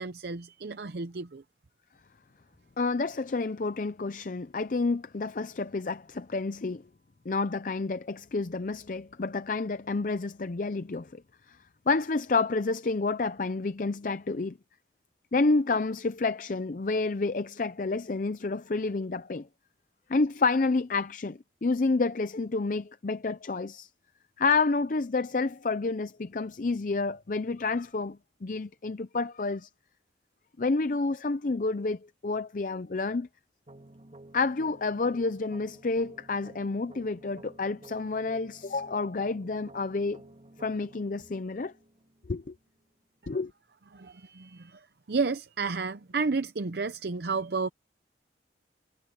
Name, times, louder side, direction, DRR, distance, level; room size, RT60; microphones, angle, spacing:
voice 1, 0.0-1.4 43.9-47.7, right 4 dB, 65° right, 0.6 m, -32 dB
voice 2, 2.8-6.8 7.3-11.2 11.5-11.6 11.9-14.6 15.3-19.5 20.1-23.9 24.4-29.7 30.6-33.3 34.3-40.2 40.6-41.7 42.3-42.5 43.3-43.5, left 3 dB, 45° left, 0.5 m, -29 dB
sound 1, 33.7-42.7, right 1 dB, 35° right, 3.1 m, -52 dB
head